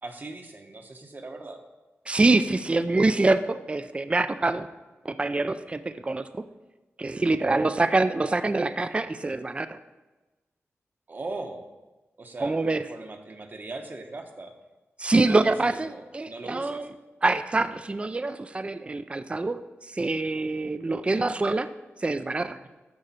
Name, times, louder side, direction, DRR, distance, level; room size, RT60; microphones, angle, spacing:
voice 1, 0.0-1.6 2.9-3.0 7.5-7.7 11.1-11.7 12.2-14.5 15.3-16.9, right 2 dB, 40° right, 5 dB, 1.0 m, -39 dB
voice 2, 2.1-4.7 5.0-6.4 7.0-9.8 12.4-12.8 15.0-16.9 17.2-21.7 22.0-22.6, right 2 dB, 25° right, 11 dB, 0.4 m, -25 dB
13.0 x 4.9 x 4.3 m, 1.2 s
wide cardioid pair, 110°, 5 cm